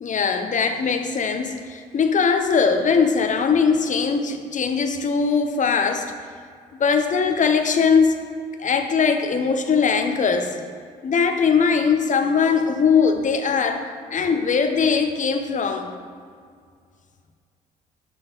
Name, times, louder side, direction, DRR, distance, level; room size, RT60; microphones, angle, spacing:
voice 1, 0.0-6.1 6.8-8.1 8.6-10.6 11.0-13.9 14.1-15.9, left 5 dB, 45° left, 6 dB, 0.7 m, -20 dB
6.1 x 5.8 x 4.0 m, 2.1 s
hypercardioid pair, 50°, 19 cm